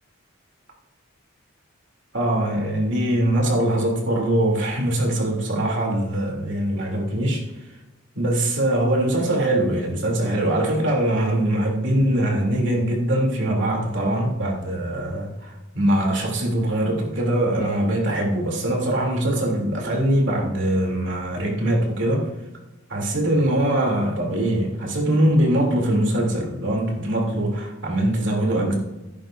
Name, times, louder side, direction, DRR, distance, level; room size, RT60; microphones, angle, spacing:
voice 1, 2.1-7.4 8.1-22.3 22.9-28.8, right 1 dB, 65° right, -1 dB, 3.1 m, -22 dB
15.0 x 11.0 x 2.7 m, 1.0 s
head